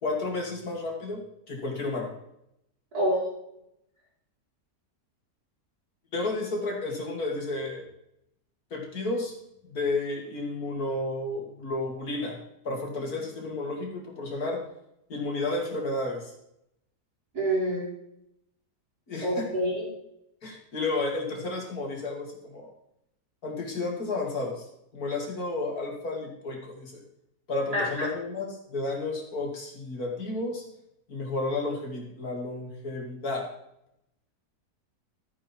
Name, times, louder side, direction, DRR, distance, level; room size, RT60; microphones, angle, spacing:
voice 1, 0.0-2.1 6.1-7.8 8.7-9.3 9.7-12.4 12.6-14.6 15.1-16.3 19.1-19.5 20.4-22.7 23.4-24.7 24.9-27.0 27.5-30.6 31.1-33.4, left 2 dB, 65° left, 1 dB, 2.7 m, -32 dB
voice 2, 2.9-3.2 17.3-17.9 19.2-19.9 27.7-28.1, equal, 70° right, -6 dB, 5.5 m, -27 dB
13.0 x 9.4 x 4.5 m, 0.80 s
omnidirectional pair, 1.7 m